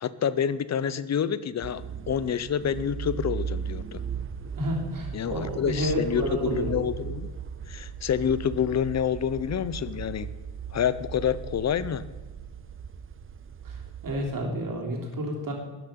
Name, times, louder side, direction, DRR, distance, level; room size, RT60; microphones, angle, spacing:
voice 1, 0.0-4.0 5.1-7.3 7.7-10.3 10.7-12.0, left 8 dB, 35° left, 16 dB, 0.6 m, -28 dB
sound 1, 1.6-14.3, right 7 dB, 30° right, 0.5 m, -37 dB
voice 2, 4.6-6.7 13.6-13.8 14.0-15.5, equal, 45° right, 0 dB, 3.3 m, -30 dB
13.5 x 10.0 x 5.8 m, 1.2 s
wide cardioid pair, 165°, 47 cm